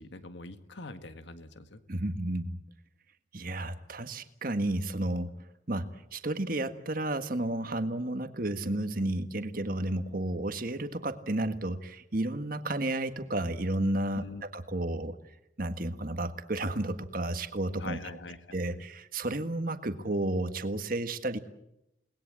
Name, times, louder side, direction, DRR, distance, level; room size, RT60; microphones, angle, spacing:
voice 1, 0.0-1.8 14.2-14.4 17.8-18.6, left 3 dB, 70° left, 9 dB, 1.8 m, -43 dB
voice 2, 1.9-2.6 3.3-5.3 5.7-15.2 15.6-18.0 18.5-21.4, right 1 dB, 45° right, 9 dB, 1.7 m, -32 dB
29.5 x 20.0 x 7.6 m, 0.84 s
head